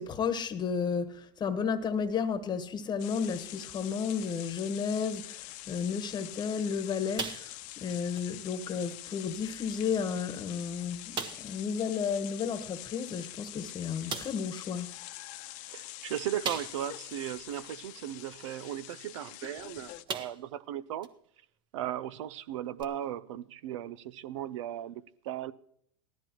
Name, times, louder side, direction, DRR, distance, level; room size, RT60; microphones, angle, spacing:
voice 1, 0.0-14.9, left 6 dB, 30° left, 1.3 m, -33 dB
sound 1, 3.0-20.0, left 16 dB, 55° left, 0.9 m, -45 dB
sound 2, 7.2-7.8 8.2-8.3 8.9-9.0 9.9-10.0 10.3-10.4 11.1-11.6 13.2-13.3 14.1-14.5 16.4-17.0 17.5-17.6 19.4-19.6 20.1-20.6 21.0-21.1 22.8-22.9, right 5 dB, 30° right, 1.1 m, -38 dB
voice 2, 15.7-21.1 21.7-25.5, right 11 dB, 75° right, 0.6 m, -37 dB
18.0 x 13.5 x 3.0 m
supercardioid pair, 110°, 16 cm